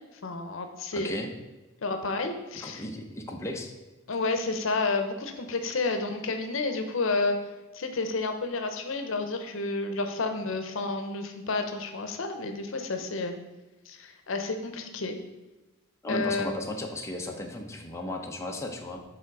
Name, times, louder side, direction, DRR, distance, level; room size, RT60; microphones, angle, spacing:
voice 1, 0.2-1.3 1.8-2.8 4.1-7.4 7.7-13.3 13.9-15.2 16.1-16.5, left 3 dB, 75° left, 6 dB, 0.7 m, -30 dB
voice 2, 0.9-1.3 2.6-3.7 16.0-19.0, left 1 dB, 15° left, 1 dB, 0.7 m, -35 dB
7.2 x 3.7 x 4.7 m, 1.1 s
head